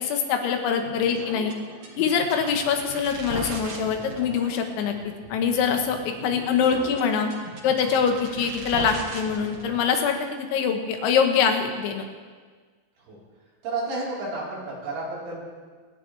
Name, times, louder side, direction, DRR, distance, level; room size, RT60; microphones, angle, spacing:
voice 1, 0.0-1.5 2.0-4.9 5.3-7.3 7.6-12.1, left 6 dB, 90° left, 4 dB, 3.7 m, -24 dB
sound 1, 0.8-10.1, right 4 dB, 55° right, 2.1 m, -39 dB
voice 2, 13.6-15.5, right 2 dB, 85° right, -7 dB, 6.6 m, -31 dB
27.5 x 10.5 x 3.4 m, 1.5 s
omnidirectional pair, 5.2 m